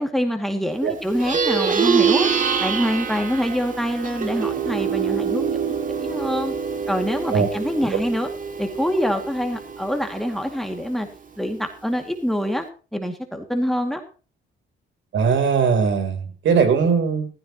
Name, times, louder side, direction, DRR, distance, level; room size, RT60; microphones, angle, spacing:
voice 1, 0.0-2.3 2.6-6.5 6.9-8.3 8.6-11.1 11.4-12.7 12.9-14.0, equal, ahead, 5 dB, 2.3 m, -25 dB
Plucked string instrument, 1.1-10.8, right 6 dB, 40° right, 2.3 m, -25 dB
voice 2, 15.1-17.3, right 6 dB, 70° right, 7 dB, 3.6 m, -19 dB
15.0 x 14.5 x 3.0 m, 0.36 s
cardioid pair, 90°, 20 cm